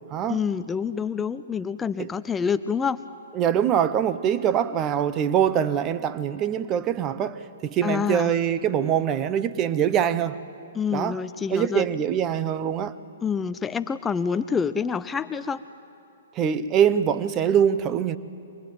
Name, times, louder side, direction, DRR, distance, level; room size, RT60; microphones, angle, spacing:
voice 1, 0.3-3.0 7.8-8.3 10.7-11.9 13.2-15.6, left 6 dB, 10° left, 0.5 m, -27 dB
voice 2, 3.3-10.4 10.9-11.2 11.5-13.0 16.3-18.2, right 9 dB, 25° right, 0.8 m, -23 dB
24.5 x 20.5 x 9.2 m
figure-of-eight pair, 115°, 0 cm